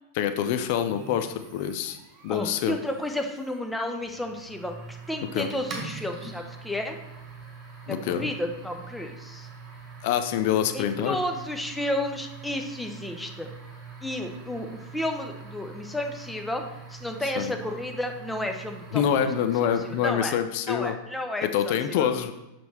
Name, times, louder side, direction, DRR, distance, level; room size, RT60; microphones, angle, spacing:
voice 1, 0.2-2.0 2.2-2.8 5.3-5.5 7.9-8.3 10.0-11.2 17.4-17.5 18.9-20.9 21.4-22.3, left 9 dB, 50° left, 9 dB, 0.5 m, -26 dB
sound 1, 0.9-20.4, right 4 dB, 30° right, 1.6 m, -44 dB
voice 2, 2.3-4.8 5.1-7.0 7.9-9.5 10.7-13.5 14.0-19.3 19.8-20.3 20.7-22.1, left 1 dB, 5° left, 4 dB, 0.8 m, -32 dB
6.7 x 5.8 x 3.2 m, 0.98 s
figure-of-eight pair, 90°, 0 cm